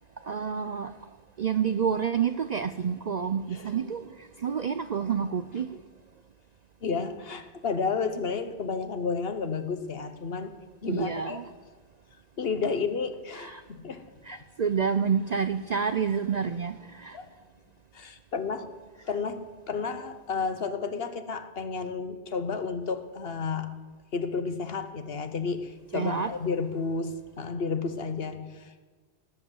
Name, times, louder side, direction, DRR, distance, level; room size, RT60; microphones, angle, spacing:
voice 1, 0.2-0.9 1.4-5.8 10.9-11.4 13.4-13.6 14.2-17.2 25.9-26.3, right 7 dB, 55° right, 0.5 m, -29 dB
voice 2, 6.8-10.6 10.8-11.4 12.4-14.0 14.3-14.4 17.1-17.3 17.9-18.7 19.1-23.7 24.1-28.8, left 5 dB, 60° left, 1.2 m, -32 dB
18.5 x 7.8 x 7.9 m
omnidirectional pair, 1.1 m